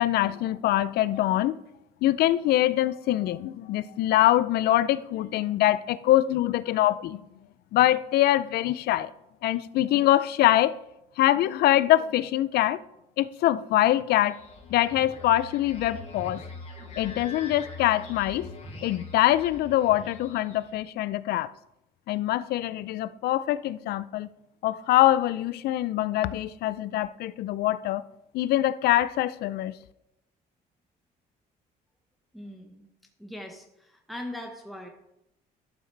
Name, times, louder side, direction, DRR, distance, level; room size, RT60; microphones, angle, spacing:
voice 1, 0.0-1.5 2.0-7.2 7.7-9.1 9.4-10.8 11.2-12.8 13.2-14.4 14.7-16.4 17.0-18.5 18.8-21.5 22.1-24.3 24.6-28.0 28.3-29.8, left 14 dB, 70° left, 0.4 m, -24 dB
sound 1, 14.2-20.8, left 3 dB, 40° left, 1.8 m, -43 dB
voice 2, 32.3-32.9 33.2-34.9, left 1 dB, ahead, 1.0 m, -40 dB
12.0 x 7.1 x 3.3 m
cardioid pair, 110°, 17 cm